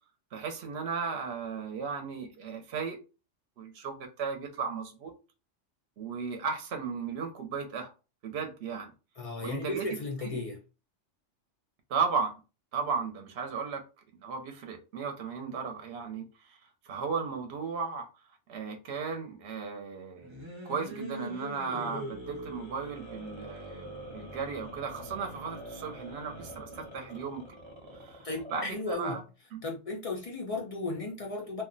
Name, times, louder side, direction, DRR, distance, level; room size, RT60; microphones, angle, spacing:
voice 1, 0.3-3.0 3.6-5.1 6.0-7.9 8.2-8.9 9.4-10.4 11.9-12.4 12.7-13.8 14.2-16.6 16.8-18.1 18.5-27.6 27.9-29.2 29.5-29.6, right 5 dB, 65° right, 0.8 m, -35 dB
voice 2, 9.2-10.6 28.2-29.2 29.6-31.6, left 2 dB, 60° left, 0.3 m, -35 dB
sound 1, 20.2-28.9, equal, 35° right, 0.4 m, -43 dB
2.4 x 2.1 x 3.8 m
omnidirectional pair, 1.3 m